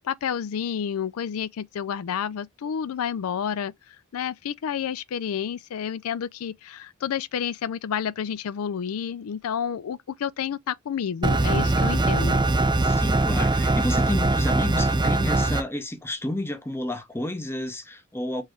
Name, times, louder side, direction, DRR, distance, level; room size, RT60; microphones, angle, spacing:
voice 1, 0.0-3.7 4.1-12.5, left 8 dB, 75° left, 0.4 m, -30 dB
sound 1, 11.2-15.6, right 2 dB, 20° right, 0.4 m, -22 dB
voice 2, 12.8-18.4, left 1 dB, 10° left, 0.8 m, -30 dB
4.3 x 3.3 x 3.0 m
head